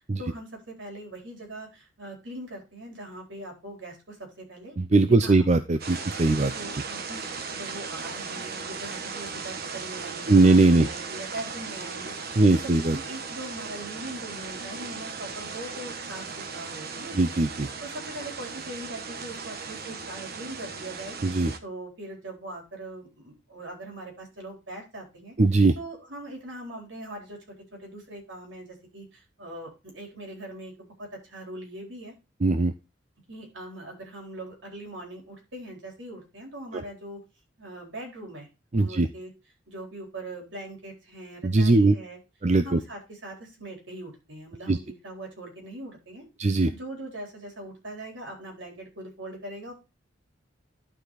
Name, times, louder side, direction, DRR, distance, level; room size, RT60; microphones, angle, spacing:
voice 1, 0.2-4.8 5.0-5.5 5.9-6.1 6.5-17.2 17.8-21.2 21.6-25.4 25.8-32.1 33.3-37.2 37.6-38.5 38.8-39.3 39.7-42.2 42.6-46.2 46.7-49.7, right 1 dB, 75° right, 1 dB, 4.1 m, -41 dB
voice 2, 4.8-6.5 10.3-10.9 12.4-13.0 17.2-17.7 21.2-21.5 25.4-25.7 32.4-32.7 38.7-39.1 41.4-41.9 42.4-42.8 44.7-44.8 46.4-46.7, right 3 dB, 40° right, 10 dB, 0.6 m, -20 dB
sound 1, 5.8-21.6, right 5 dB, 55° right, 1.2 m, -37 dB
11.5 x 5.0 x 4.1 m, 0.27 s
head